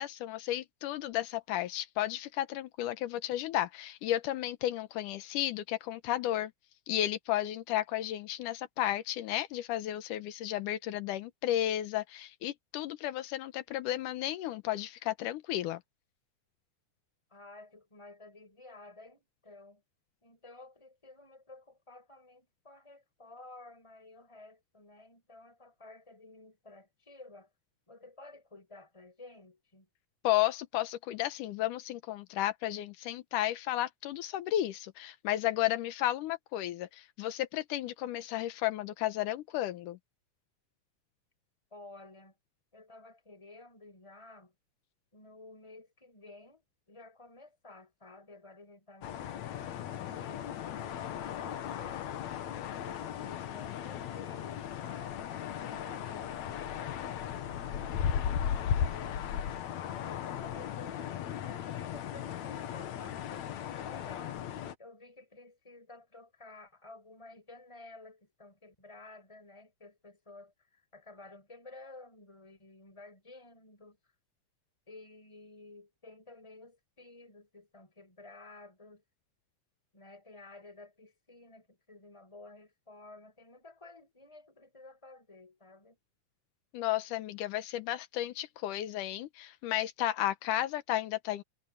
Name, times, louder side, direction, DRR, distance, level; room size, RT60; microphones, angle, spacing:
voice 1, 0.0-6.5 6.9-15.8 30.2-40.0 86.7-91.4, left 13 dB, 90° left, 2.5 m, -33 dB
voice 2, 17.3-19.8 20.2-27.5 27.9-29.9 41.7-42.4 42.7-44.5 45.1-52.5 52.8-55.2 55.6-59.5 59.8-64.4 64.8-74.1 74.9-79.0 79.9-86.0, left 2 dB, 10° left, 6.4 m, -53 dB
sound 1, 49.0-64.8, left 9 dB, 65° left, 2.4 m, -36 dB
omnidirectional pair, 3.6 m